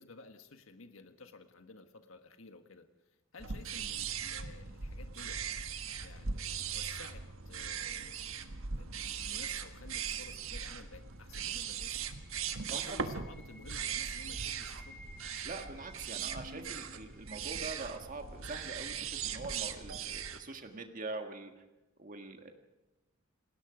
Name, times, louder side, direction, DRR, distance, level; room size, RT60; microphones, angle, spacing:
voice 1, 0.0-2.9 3.3-5.4 6.0-8.4 8.7-12.0 12.7-15.0, left 3 dB, 80° left, 7 dB, 1.7 m, -54 dB
sound 1, 3.4-20.4, right 7 dB, 80° right, 1.5 m, -39 dB
sound 2, 10.3-18.3, right 1 dB, 5° left, 3.4 m, -58 dB
voice 2, 12.7-13.1 15.4-21.5 22.0-22.5, right 3 dB, 40° right, 5 dB, 1.7 m, -44 dB
28.5 x 19.5 x 5.1 m, 0.98 s
head